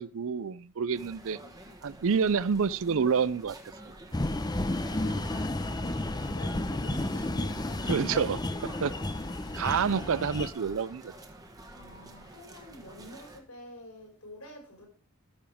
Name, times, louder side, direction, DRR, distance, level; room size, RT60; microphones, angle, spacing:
voice 1, 0.0-1.4 1.8-3.6 3.9-4.0 7.9-8.9 9.5-11.1, right 6 dB, 65° right, 0.5 m, -28 dB
sound 1, 0.9-13.4, right 1 dB, 15° right, 1.6 m, -49 dB
sound 2, 4.1-10.5, left 1 dB, 20° left, 0.7 m, -32 dB
voice 2, 4.9-7.9 9.6-9.9 11.7-14.9, equal, 80° left, 5.0 m, -48 dB
13.5 x 7.0 x 3.5 m
head